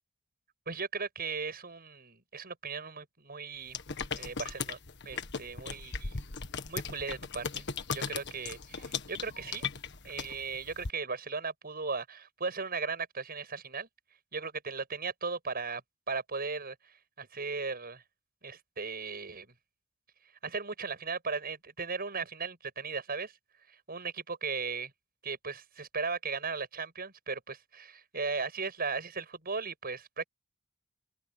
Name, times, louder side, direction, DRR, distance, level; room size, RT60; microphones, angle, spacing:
voice 1, 0.7-3.8 4.1-4.8 5.1-6.2 6.7-7.7 7.9-9.7 10.0-13.9 14.3-15.8 16.1-18.0 18.4-19.5 20.4-23.4 23.7-24.9 25.2-30.2, right 4 dB, 45° right, 7.1 m, -37 dB
sound 1, 3.7-10.9, left 5 dB, 55° left, 1.6 m, -38 dB
open air
head